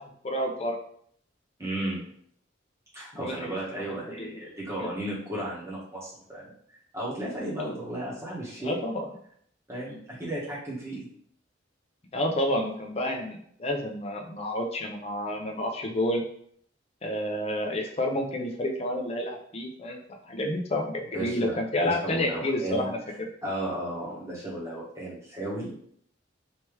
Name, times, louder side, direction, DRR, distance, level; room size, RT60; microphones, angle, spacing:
voice 1, 0.2-0.8 3.2-3.5 3.9-4.3 8.6-9.0 12.1-16.2 17.0-23.0, left 1 dB, 30° left, 2 dB, 0.5 m, -29 dB
voice 2, 1.6-2.0 2.9-6.4 6.9-8.8 9.7-11.1 21.1-22.9 23.4-25.7, right 1 dB, 15° right, -7 dB, 1.3 m, -34 dB
3.4 x 3.0 x 3.2 m, 0.65 s
head